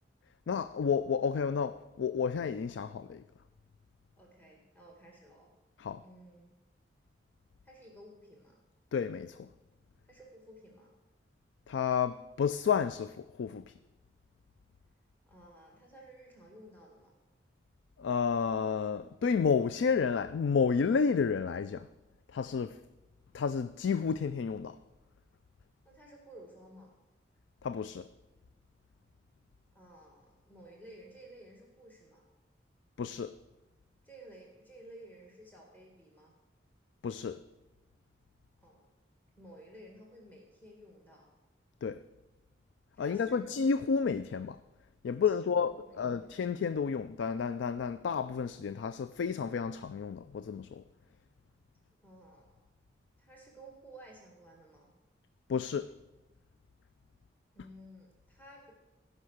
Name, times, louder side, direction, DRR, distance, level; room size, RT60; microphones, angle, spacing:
voice 1, 0.5-3.2 5.8-6.0 8.9-9.5 11.7-13.6 18.0-21.9 22.3-22.8 23.3-24.8 27.6-28.1 33.0-33.3 37.0-37.4 41.8-42.0 43.0-44.6 45.0-50.8 55.5-55.9, left 6 dB, 75° left, 0.3 m, -31 dB
voice 2, 4.2-5.5 6.0-6.5 7.6-8.6 10.1-10.9 15.2-17.1 25.8-26.9 29.7-32.2 34.0-36.3 38.6-38.9 39.4-41.3 42.9-43.5 45.1-46.4 52.0-52.6 53.2-54.9 57.5-58.7, right 1 dB, 10° left, 1.8 m, -54 dB
16.5 x 5.5 x 6.4 m
head